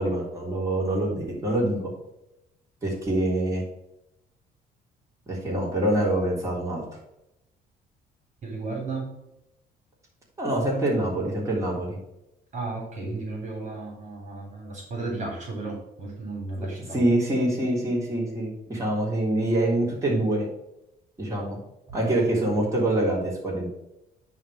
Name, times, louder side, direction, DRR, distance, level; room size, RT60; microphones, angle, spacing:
voice 1, 0.0-1.9 2.8-3.6 5.3-6.8 10.4-12.0 16.9-20.5 21.2-21.6 21.9-23.7, right 1 dB, 20° right, -4 dB, 3.6 m, -25 dB
voice 2, 8.4-9.1 12.5-17.0 21.9-22.0 22.3-22.5, right 3 dB, 45° right, -1 dB, 3.4 m, -34 dB
9.9 x 3.7 x 6.5 m, 0.87 s
cardioid pair, 110°, 17 cm